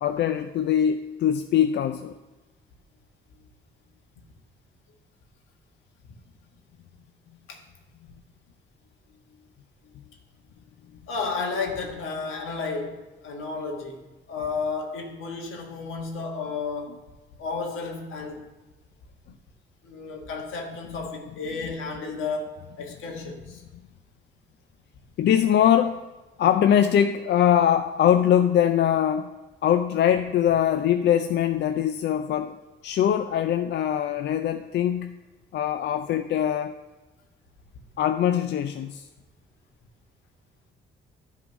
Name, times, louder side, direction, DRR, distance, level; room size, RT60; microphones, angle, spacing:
voice 1, 0.0-2.1 25.2-26.0 26.4-29.3 29.6-32.6 32.8-35.2 35.5-36.7 38.0-39.1, left 10 dB, 60° left, 0.4 m, -22 dB
voice 2, 11.1-17.0 17.4-18.5 19.8-23.6, left 4 dB, 85° left, 1.6 m, -32 dB
10.5 x 3.8 x 6.1 m
cardioid pair, 90°, 20 cm